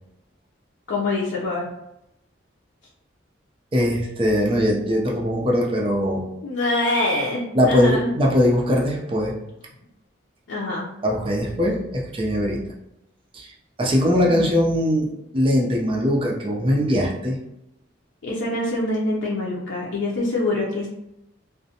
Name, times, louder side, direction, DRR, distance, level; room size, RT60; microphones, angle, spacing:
voice 1, 0.9-1.7 6.4-8.1 10.5-10.9 14.2-14.5 18.2-20.9, left 2 dB, 80° left, -5 dB, 0.5 m, -24 dB
voice 2, 3.7-6.3 7.5-9.4 11.0-12.7 13.3-13.5 13.8-17.4, equal, 30° right, -2 dB, 0.5 m, -21 dB
2.5 x 2.1 x 2.7 m, 0.85 s
head